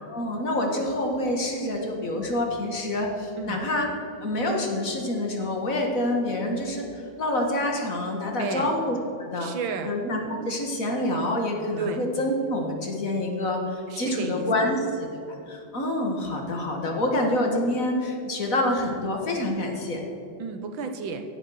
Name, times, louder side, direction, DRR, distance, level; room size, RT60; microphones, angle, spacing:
voice 1, 0.0-3.9 4.2-9.5 9.8-20.0, left 1 dB, 45° left, 1 dB, 2.1 m, -27 dB
voice 2, 8.4-8.7 9.4-9.9 11.8-12.0 13.9-14.5 20.4-21.2, right 5 dB, 90° right, 6 dB, 1.9 m, -32 dB
16.5 x 7.4 x 6.4 m, 2.7 s
omnidirectional pair, 2.1 m